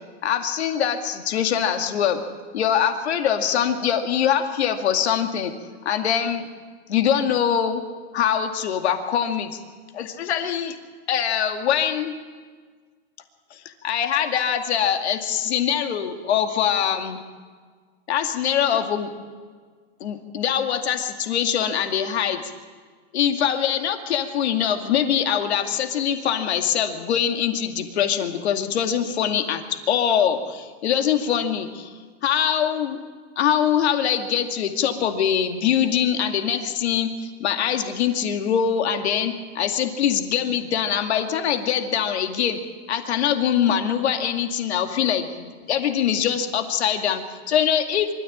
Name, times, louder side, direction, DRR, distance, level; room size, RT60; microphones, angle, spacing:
voice 1, 0.2-2.2 2.5-5.5 5.8-6.5 6.9-7.8 8.1-9.6 9.9-10.8 11.1-12.1 13.5-13.6 13.8-17.2 18.1-19.1 20.0-22.4 23.1-31.9 32.2-33.0 33.4-42.6 42.9-48.1, left 9 dB, 70° left, 5 dB, 2.3 m, -23 dB
24.5 x 13.5 x 8.7 m, 1.5 s
supercardioid pair, 180°, 33 cm